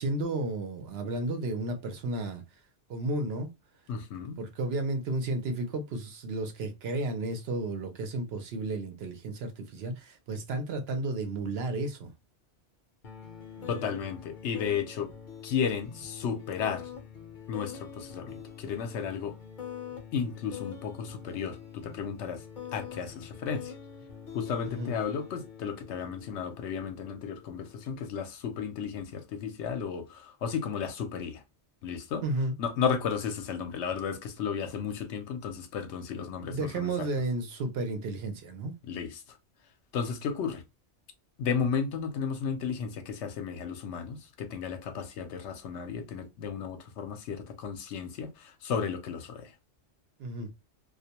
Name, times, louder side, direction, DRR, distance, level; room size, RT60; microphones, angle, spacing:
voice 1, 0.0-2.4 2.9-3.5 4.4-12.1 13.6-13.8 24.6-24.9 32.2-32.5 36.4-38.7 50.2-50.5, right 2 dB, 65° right, 0.8 m, -33 dB
voice 2, 3.9-4.4 13.7-15.1 15.4-16.9 17.5-19.4 20.1-22.4 22.7-23.7 24.3-31.4 31.8-32.2 32.6-37.1 38.9-39.2 39.9-40.6 41.4-49.5, left 6 dB, 75° left, 0.9 m, -33 dB
sound 1, 13.0-28.1, left 8 dB, 50° left, 0.7 m, -45 dB
2.3 x 2.1 x 2.7 m
omnidirectional pair, 1.2 m